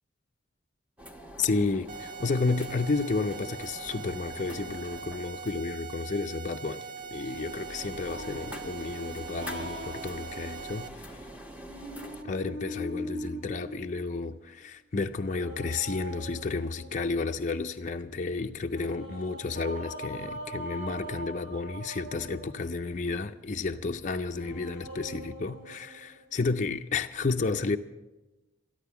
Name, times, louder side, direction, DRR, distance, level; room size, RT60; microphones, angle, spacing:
sound 1, 1.0-12.2, equal, 5° right, 1.1 m, -46 dB
voice 1, 1.4-11.3 12.2-27.8, left 3 dB, 40° left, 0.5 m, -32 dB
sound 2, 1.9-10.9, right 6 dB, 40° right, 0.6 m, -42 dB
sound 3, 8.0-10.7 11.5-14.5 15.2-17.3 18.7-22.9 24.3-26.3, equal, 90° right, 5.5 m, -42 dB
13.5 x 11.5 x 6.9 m
head